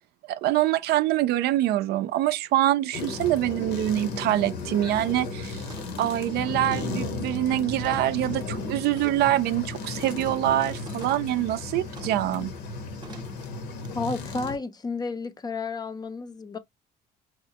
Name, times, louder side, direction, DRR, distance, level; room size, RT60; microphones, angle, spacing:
voice 1, 0.3-5.7 6.0-12.5, right 13 dB, 75° right, 0.4 m, -25 dB
sound 1, 2.9-14.6, left 3 dB, 85° left, 1.0 m, -35 dB
sound 2, 4.5-4.7 5.0-5.4 5.7-6.1 6.6-8.3 9.0-9.3 10.0-11.3 12.0-12.3 13.0-13.4 13.8-13.9, right 3 dB, 25° right, 0.7 m, -47 dB
voice 2, 13.9-16.6, left 4 dB, 25° left, 0.4 m, -32 dB
4.7 x 2.1 x 2.8 m
cardioid pair, 110°, 17 cm